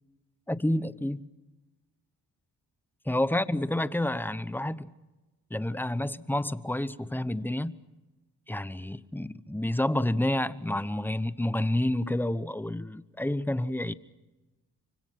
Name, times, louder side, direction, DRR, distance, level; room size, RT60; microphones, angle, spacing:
voice 1, 0.5-1.3 3.1-4.9 5.5-7.8 8.5-13.9, left 1 dB, 5° left, 0.9 m, -29 dB
25.0 x 25.0 x 5.9 m
cardioid pair, 65°, 39 cm